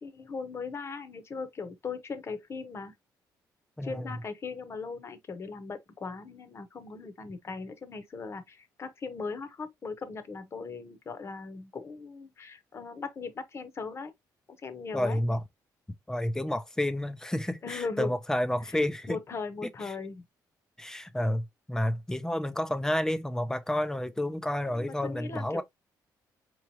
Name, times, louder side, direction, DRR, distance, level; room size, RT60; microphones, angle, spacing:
voice 1, 0.0-2.9 3.8-14.1 14.6-15.2 17.6-18.1 18.7-18.8 19.1-20.2 24.7-25.6, left 4 dB, 35° left, 0.9 m, -38 dB
voice 2, 3.8-4.1 14.9-15.4 16.1-19.2 19.6-19.9 20.8-25.6, left 1 dB, 10° left, 0.5 m, -30 dB
4.7 x 3.1 x 2.7 m
cardioid pair, 115°, 7 cm